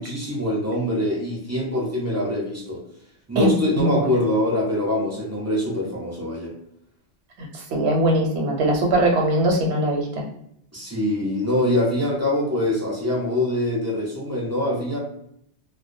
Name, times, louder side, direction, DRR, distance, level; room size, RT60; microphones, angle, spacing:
voice 1, 0.0-2.8 3.3-6.5 10.7-15.0, left 1 dB, 20° right, -5 dB, 0.5 m, -24 dB
voice 2, 3.8-4.1 7.7-10.1, right 1 dB, 65° right, 1 dB, 0.9 m, -20 dB
2.2 x 2.2 x 2.6 m, 0.72 s
omnidirectional pair, 1.2 m